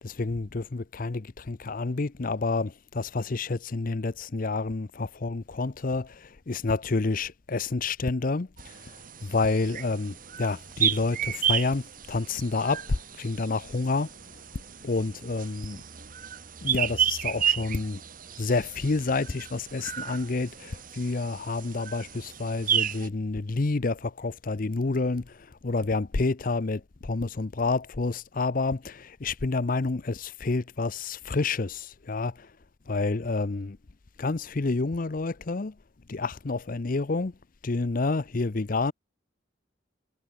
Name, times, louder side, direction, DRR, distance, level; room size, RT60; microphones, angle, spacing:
voice 1, 0.0-14.1 14.8-15.8 16.6-18.0 18.4-32.5 32.9-33.8 34.2-35.7 36.1-37.3 37.6-38.9, left 3 dB, 50° left, 0.7 m, -29 dB
sound 1, 8.6-23.1, right 9 dB, 45° right, 1.6 m, -32 dB
head